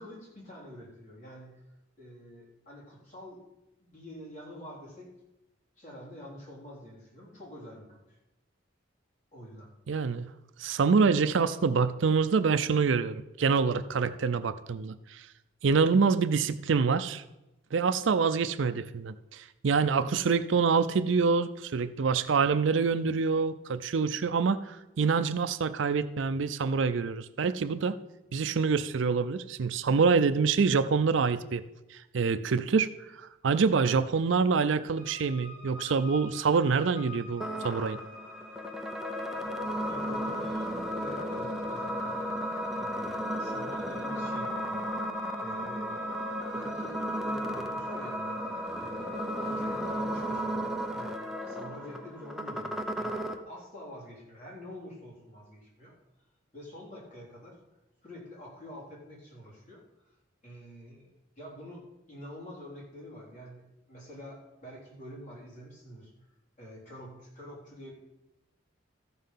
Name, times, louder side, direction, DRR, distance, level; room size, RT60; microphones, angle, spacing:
voice 1, 0.0-1.6 2.0-3.4 3.8-5.1 5.8-8.2 9.3-9.7 39.9-40.7 40.9-42.5 42.7-46.1 46.5-50.6 50.9-55.9 56.5-57.5 58.0-60.1 60.4-61.1 61.4-61.8 62.1-66.1 66.6-67.9, equal, 40° left, -5 dB, 3.8 m, -47 dB
voice 2, 9.9-10.3 10.6-15.2 15.6-17.2 17.7-28.0 28.3-31.6 31.9-32.9 33.2-38.0, right 5 dB, 70° right, 12 dB, 0.5 m, -26 dB
sound 1, 35.0-50.0, left 4 dB, 80° left, 2.2 m, -47 dB
sound 2, 37.4-53.4, equal, ahead, 0.7 m, -34 dB
14.0 x 5.5 x 5.7 m, 0.95 s
head